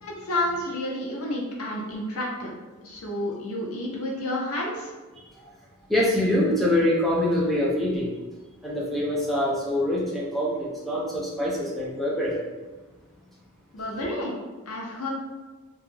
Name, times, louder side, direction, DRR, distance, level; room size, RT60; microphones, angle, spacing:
voice 1, 0.0-2.5 2.8-4.9 13.7-14.3 14.7-15.1, left 1 dB, 80° left, -2 dB, 0.6 m, -30 dB
voice 2, 5.9-8.1 8.6-12.3, left 1 dB, ahead, -5 dB, 0.3 m, -24 dB
2.2 x 2.1 x 3.1 m, 1.2 s
head